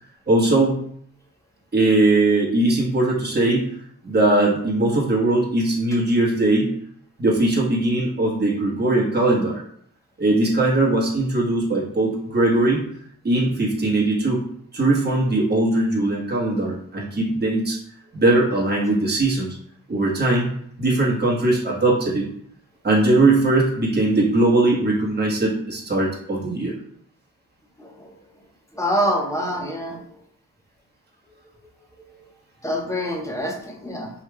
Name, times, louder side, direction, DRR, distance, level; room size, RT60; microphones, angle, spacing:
voice 1, 0.3-0.8 1.7-3.6 4.0-6.7 7.2-9.6 10.2-12.8 13.2-14.4 14.7-17.8 18.1-19.6 19.9-20.5 20.8-22.3 22.8-26.7, right 2 dB, 30° right, -4 dB, 1.3 m, -20 dB
voice 2, 28.7-30.0 32.6-34.1, equal, 10° left, -1 dB, 1.1 m, -25 dB
4.7 x 3.1 x 2.3 m, 0.67 s
supercardioid pair, 45°, 34 cm